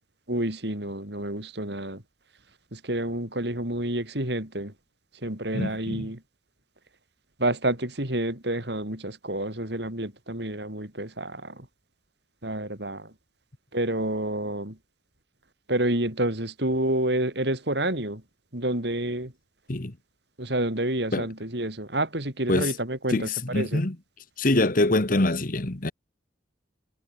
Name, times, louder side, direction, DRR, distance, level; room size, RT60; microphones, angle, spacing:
voice 1, 0.3-2.0 2.7-4.7 5.2-6.2 7.4-11.7 12.4-13.1 13.7-14.8 15.7-18.2 18.5-19.3 20.4-23.3 23.5-23.8, right 1 dB, 60° right, 4.9 m, -29 dB
voice 2, 5.5-6.1 19.7-19.9 21.1-21.3 22.5-22.8 23.1-24.0 24.4-25.9, left 2 dB, 50° left, 1.5 m, -24 dB
head